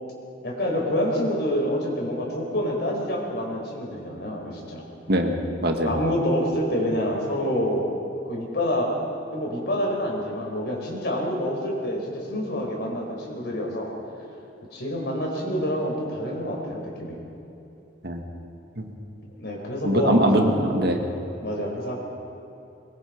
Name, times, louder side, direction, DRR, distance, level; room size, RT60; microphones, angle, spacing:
voice 1, 0.4-4.8 5.8-7.9 8.2-8.9 9.3-13.9 14.7-17.2 19.4-20.6 21.4-21.9, equal, 60° left, -1 dB, 5.2 m, -27 dB
voice 2, 5.1-6.0 18.0-18.2 18.8-18.9 19.8-21.0, right 1 dB, 60° right, 3 dB, 2.0 m, -22 dB
22.5 x 22.5 x 5.4 m, 2.8 s
head